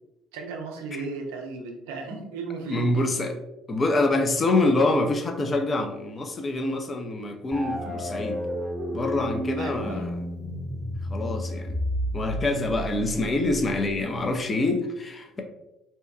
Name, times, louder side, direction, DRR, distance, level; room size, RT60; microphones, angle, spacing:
voice 1, 0.3-2.9 9.6-10.1, right 4 dB, 75° right, 3 dB, 0.4 m, -35 dB
voice 2, 2.7-3.3 3.7-8.5 8.9-10.2 11.1-11.8 12.1-15.4, left 2 dB, 35° left, 4 dB, 0.4 m, -26 dB
sound 1, 7.5-14.2, equal, 15° right, 0.8 m, -32 dB
2.8 x 2.2 x 2.3 m, 0.89 s
figure-of-eight pair, 50°, 0 cm